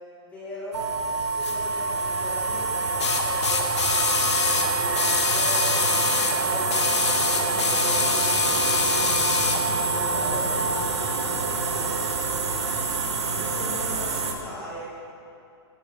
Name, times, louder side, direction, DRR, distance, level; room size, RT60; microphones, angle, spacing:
voice 1, 0.2-0.9 1.3-5.6 6.0-9.5 9.9-11.9 13.3-14.9, equal, 10° left, -9 dB, 2.3 m, -39 dB
sound 1, 0.7-10.8, right 2 dB, 45° right, 0.6 m, -29 dB
sound 2, 0.7-14.3, right 4 dB, 90° right, 1.1 m, -28 dB
sound 3, 1.4-1.6 3.0-6.4 6.7-9.7 10.6-10.7, left 6 dB, 90° left, 0.9 m, -25 dB
9.0 x 8.1 x 3.8 m, 2.5 s
hypercardioid pair, 155°, 14 cm